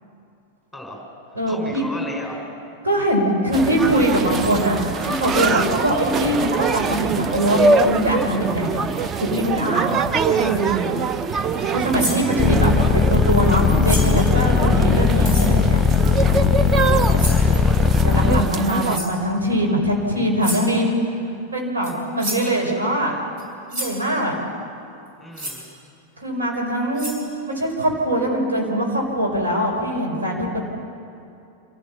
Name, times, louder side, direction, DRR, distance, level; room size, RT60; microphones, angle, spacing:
voice 1, 0.7-1.0 1.5-2.5 9.6-10.8 16.9-18.1 25.2-25.7, equal, 5° right, -1 dB, 5.1 m, -36 dB
voice 2, 1.3-1.8 2.8-8.7 9.2-9.9 10.2-11.0 11.7-15.8 17.1-17.2 18.0-20.9 21.5-23.1 23.7-24.3 26.2-30.6, equal, 75° right, 0 dB, 4.7 m, -22 dB
sound 1, 3.5-19.0, right 4 dB, 25° right, 0.7 m, -23 dB
sound 2, 12.0-12.3 13.8-14.2 15.2-15.5 17.2-17.5 18.9-19.2 20.4-20.7 21.8-21.9 22.2-22.5 23.4-23.5 23.7-24.0 25.3-25.6 26.5-26.6 26.9-27.2, right 1 dB, 45° right, 6.3 m, -29 dB
sound 3, 12.4-18.4, left 7 dB, 15° left, 1.1 m, -17 dB
27.5 x 15.5 x 7.1 m, 2.6 s
figure-of-eight pair, 90°, 0 cm